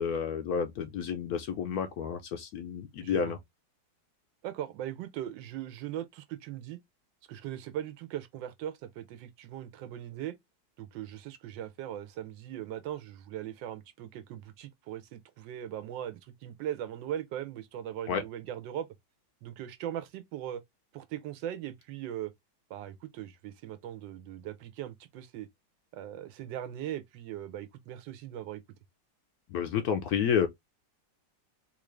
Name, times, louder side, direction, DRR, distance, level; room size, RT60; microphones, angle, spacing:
voice 1, 0.0-3.4 18.1-18.2 29.5-30.5, left 7 dB, 70° left, 0.9 m, -30 dB
voice 2, 3.0-3.3 4.4-6.8 7.3-10.3 10.8-18.9 19.4-20.6 20.9-22.3 22.7-25.5 25.9-28.6, right 11 dB, 80° right, 1.3 m, -39 dB
3.7 x 2.5 x 3.1 m
omnidirectional pair, 2.0 m